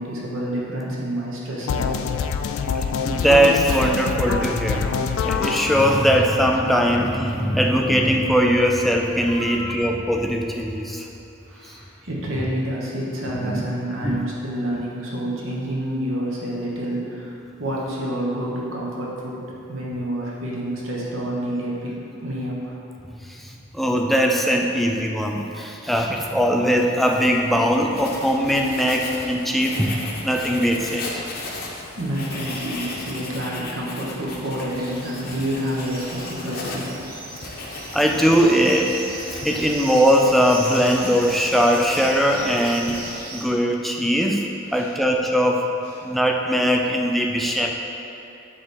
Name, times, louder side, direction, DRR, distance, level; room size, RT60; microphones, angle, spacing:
voice 1, 0.0-2.0 6.7-7.0 9.3-9.9 11.5-22.7 32.0-37.0 44.6-45.0 45.9-46.1, right 1 dB, 70° right, -4 dB, 1.2 m, -29 dB
sound 1, 1.7-7.7, left 5 dB, 75° left, 0.3 m, -26 dB
voice 2, 3.0-11.1 13.4-13.6 14.0-14.2 23.3-31.2 37.9-39.0 39.3-44.4 44.7-45.7 46.0-47.7, equal, ahead, 1 dB, 0.4 m, -20 dB
Writing, 27.1-43.3, left 2 dB, 50° left, 0.8 m, -36 dB
sound 2, 34.7-43.4, right 2 dB, 45° right, 0.8 m, -38 dB
7.5 x 3.4 x 4.3 m, 2.9 s
head